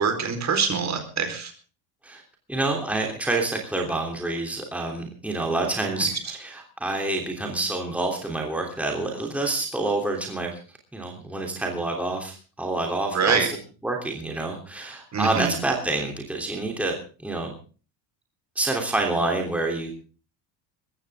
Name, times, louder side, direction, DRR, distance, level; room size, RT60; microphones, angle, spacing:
voice 1, 0.0-1.5 6.0-6.1 13.1-13.5 15.1-15.6, right 6 dB, 35° right, 7 dB, 4.3 m, -24 dB
voice 2, 2.5-10.6 10.9-13.6 13.8-17.5 18.5-19.9, right 2 dB, 5° right, 1 dB, 3.2 m, -27 dB
21.0 x 15.0 x 3.6 m, 0.37 s
cardioid pair, 135°, 46 cm